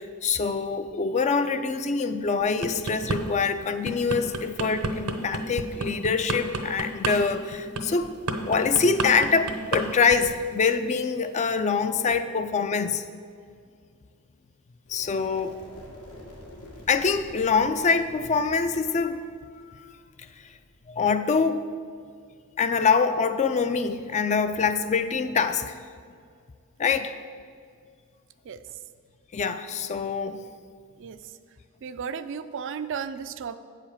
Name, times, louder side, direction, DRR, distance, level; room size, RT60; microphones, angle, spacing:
voice 1, 0.0-8.1 8.5-13.0 14.9-15.6 16.9-19.2 20.9-21.6 22.6-25.7 26.8-27.1 29.3-30.4, left 5 dB, 30° left, 10 dB, 0.4 m, -25 dB
sound 1, 2.4-3.2 3.6-9.8 10.1-10.4, right 2 dB, 80° right, 0.9 m, -30 dB
sound 2, 14.9-20.8, left 1 dB, 85° left, 2.5 m, -47 dB
voice 2, 31.8-33.6, right 6 dB, 55° right, 12 dB, 0.4 m, -34 dB
8.6 x 5.0 x 7.0 m, 2.1 s
head